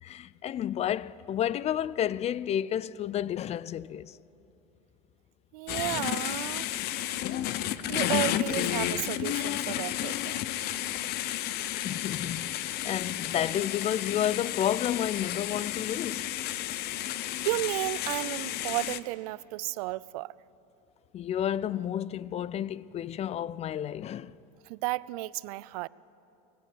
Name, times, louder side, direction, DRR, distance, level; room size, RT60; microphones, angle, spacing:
voice 1, 0.0-4.2 11.8-16.3 21.1-24.3, left 10 dB, 35° left, 0.5 m, -31 dB
voice 2, 5.5-6.8 7.9-10.4 17.2-20.3 24.7-25.9, right 20 dB, 75° right, 0.5 m, -33 dB
sound 1, 5.7-19.0, left 13 dB, 55° left, 0.8 m, -32 dB
20.0 x 15.5 x 8.7 m
supercardioid pair, 105°, 20 cm